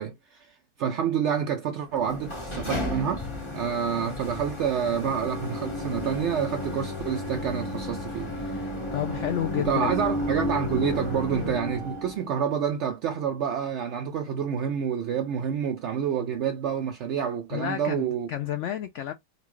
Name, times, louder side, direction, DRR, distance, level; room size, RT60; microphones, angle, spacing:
voice 1, 0.0-8.7 9.6-18.3, right 8 dB, 80° right, 0.6 m, -28 dB
sound 1, 1.9-12.3, left 1 dB, 25° left, 0.8 m, -33 dB
voice 2, 8.9-10.0 17.5-19.1, left 11 dB, 75° left, 0.6 m, -30 dB
4.1 x 2.2 x 3.0 m
omnidirectional pair, 1.7 m